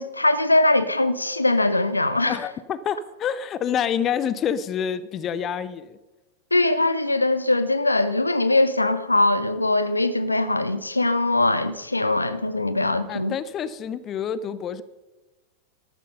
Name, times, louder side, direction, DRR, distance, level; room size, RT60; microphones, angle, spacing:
voice 1, 0.0-2.4 6.5-13.3, left 2 dB, 85° left, 0.7 m, -21 dB
voice 2, 2.3-6.0 13.1-14.8, left 8 dB, 30° left, 0.7 m, -27 dB
13.5 x 12.0 x 5.3 m
figure-of-eight pair, 90°, 0 cm